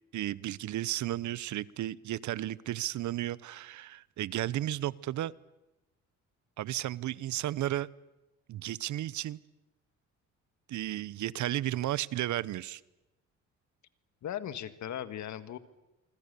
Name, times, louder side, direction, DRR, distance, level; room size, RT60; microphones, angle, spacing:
voice 1, 0.1-5.3 6.6-7.9 8.5-9.4 10.7-12.8, right 13 dB, 70° right, 20 dB, 0.8 m, -33 dB
voice 2, 14.2-15.6, left 10 dB, 70° left, 12 dB, 1.7 m, -38 dB
27.0 x 24.5 x 6.9 m, 0.99 s
cardioid pair, 90°, 30 cm